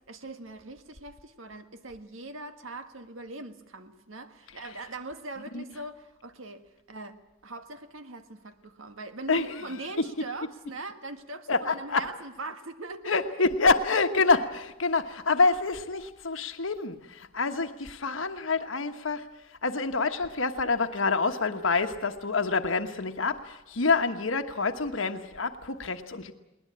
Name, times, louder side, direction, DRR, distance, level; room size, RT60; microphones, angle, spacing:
voice 1, 0.1-7.1 7.4-13.4, right 2 dB, 80° right, 1.6 m, -41 dB
voice 2, 9.3-9.6 11.5-12.1 13.1-19.3 19.6-26.3, left 4 dB, 75° left, 1.3 m, -27 dB
20.5 x 19.5 x 8.7 m
head